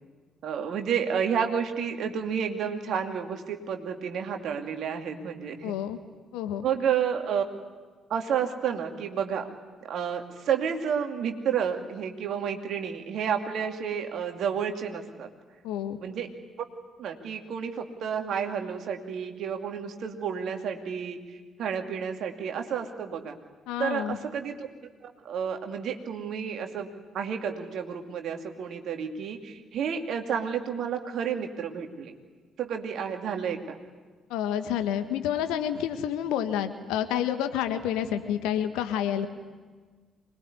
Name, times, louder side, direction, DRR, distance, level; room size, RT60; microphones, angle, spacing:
voice 1, 0.4-5.7 6.6-7.4 8.1-9.5 9.8-15.3 16.0-16.3 17.0-23.4 23.8-24.7 25.0-26.9 27.1-32.1 32.6-33.8, right 7 dB, 60° right, 4 dB, 2.6 m, -31 dB
voice 2, 5.6-6.0 6.3-6.6 15.6-16.0 23.7-24.2 34.3-39.3, left 10 dB, 70° left, 8 dB, 1.6 m, -29 dB
25.5 x 21.5 x 9.7 m, 1.4 s
figure-of-eight pair, 45°, 0 cm